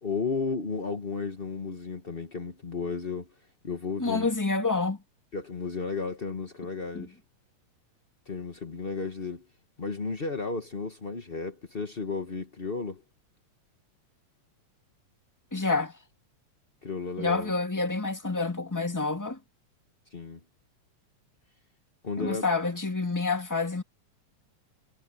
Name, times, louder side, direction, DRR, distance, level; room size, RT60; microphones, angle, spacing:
voice 1, 0.0-3.3 3.6-4.3 5.3-7.1 8.3-9.4 9.8-13.0 16.8-17.5 20.1-20.4 22.0-22.5, left 4 dB, 50° left, 0.6 m, -33 dB
voice 2, 4.0-5.0 6.9-7.1 15.5-15.9 17.2-19.4 22.2-23.8, left 3 dB, 10° left, 1.4 m, -28 dB
omnidirectional pair, 3.3 m